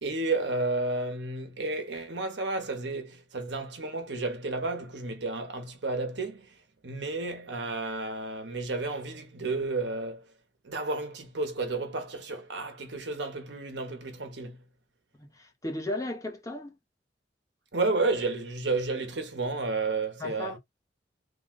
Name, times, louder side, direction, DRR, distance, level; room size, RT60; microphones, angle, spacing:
voice 1, 0.0-6.5 6.8-10.3 10.6-14.6 17.7-20.6, right 3 dB, 85° right, 1.1 m, -32 dB
voice 2, 15.1-16.7 20.2-20.6, left 1 dB, 20° left, 1.0 m, -35 dB
3.5 x 2.4 x 3.7 m
head